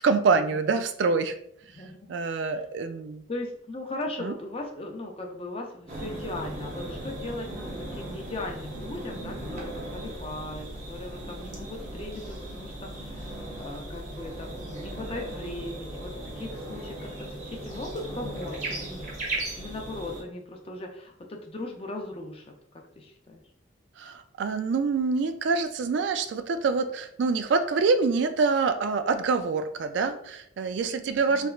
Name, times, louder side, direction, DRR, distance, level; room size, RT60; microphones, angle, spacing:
voice 1, 0.0-1.4 2.1-3.2 4.2-4.3 24.0-31.5, right 4 dB, 70° right, 9 dB, 0.3 m, -26 dB
voice 2, 3.3-19.2 19.6-23.4 31.3-31.5, left 2 dB, 30° left, 2 dB, 0.4 m, -38 dB
sound 1, 5.9-20.2, right 1 dB, 40° right, 0.7 m, -37 dB
3.3 x 3.0 x 2.3 m, 0.68 s
head